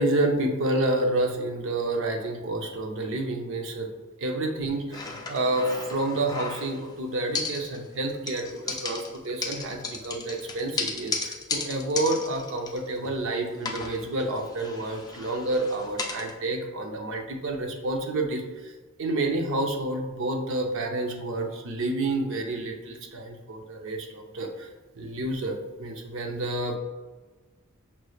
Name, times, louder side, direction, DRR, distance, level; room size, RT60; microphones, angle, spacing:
voice 1, 0.0-3.9 4.2-18.7 19.0-24.7 25.0-26.8, right 2 dB, 65° right, 3 dB, 0.6 m, -29 dB
sound 1, 4.9-6.9 7.3-8.0 8.3-13.3 13.6-16.3, left 4 dB, 20° left, 0.4 m, -35 dB
5.3 x 3.1 x 2.3 m, 1.3 s
head